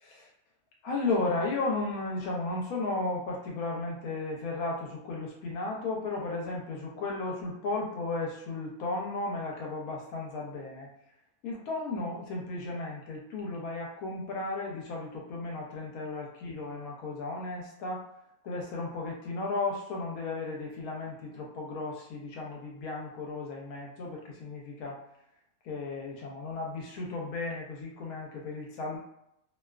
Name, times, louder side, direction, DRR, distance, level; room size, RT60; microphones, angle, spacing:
voice 1, 0.8-10.9 11.4-18.1 18.4-25.0 25.6-29.0, left 3 dB, 75° left, -1 dB, 1.0 m, -34 dB
2.6 x 2.2 x 2.3 m, 0.78 s
omnidirectional pair, 1.6 m